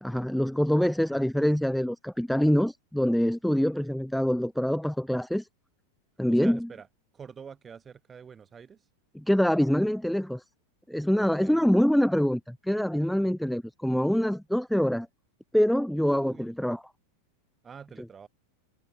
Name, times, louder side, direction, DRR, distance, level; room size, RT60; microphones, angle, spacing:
voice 1, 0.0-5.5 6.2-6.7 9.1-10.4 10.9-15.1 15.5-16.8, equal, ahead, 0.6 m, -25 dB
voice 2, 6.3-6.9 7.1-8.8 11.2-11.7 16.1-16.5 17.6-18.3, right 6 dB, 20° right, 3.2 m, -46 dB
figure-of-eight pair, 90°, 0 cm